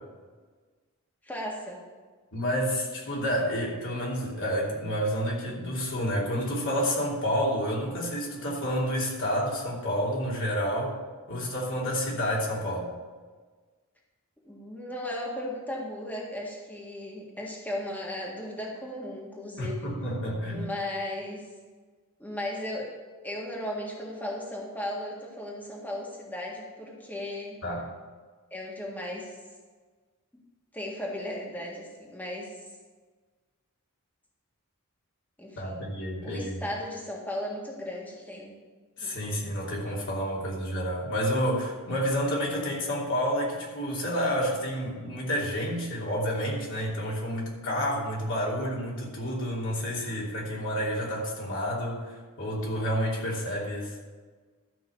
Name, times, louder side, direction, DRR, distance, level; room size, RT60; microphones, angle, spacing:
voice 1, 1.2-1.8 14.4-19.9 20.5-21.5 22.2-22.9 23.2-27.6 28.5-29.3 30.7-32.5 35.4-35.8 36.2-38.5 39.0-39.3, left 1 dB, 10° left, -2 dB, 1.7 m, -36 dB
voice 2, 2.3-10.9 11.3-12.9 19.6-20.7 27.6-27.9 35.6-36.6 39.0-54.0, equal, 60° left, -4 dB, 3.1 m, -29 dB
12.5 x 5.5 x 7.1 m, 1.4 s
head